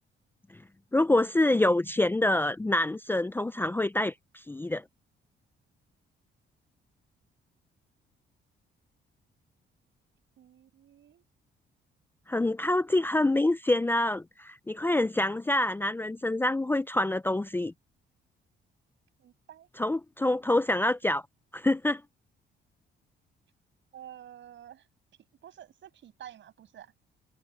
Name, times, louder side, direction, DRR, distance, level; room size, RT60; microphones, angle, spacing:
voice 1, 0.9-4.8 12.3-17.7 19.8-21.2 21.5-22.0, left 1 dB, 10° left, 0.5 m, -26 dB
voice 2, 10.4-11.2 19.2-19.7 20.2-20.4 23.9-24.9 25.4-26.9, right 10 dB, 70° right, 7.7 m, -50 dB
cardioid pair, 90°, 20 cm